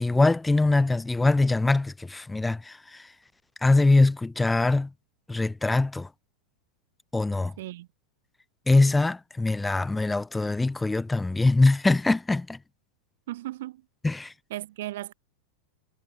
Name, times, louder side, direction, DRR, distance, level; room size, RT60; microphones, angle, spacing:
voice 1, 0.0-3.1 3.6-4.9 5.3-6.1 7.1-7.5 8.7-12.6 14.0-14.3, left 2 dB, 10° left, 1.7 m, -23 dB
voice 2, 7.6-7.9 13.3-13.8 14.5-15.1, right 15 dB, 55° right, 1.1 m, -36 dB
figure-of-eight pair, 90°, 0 cm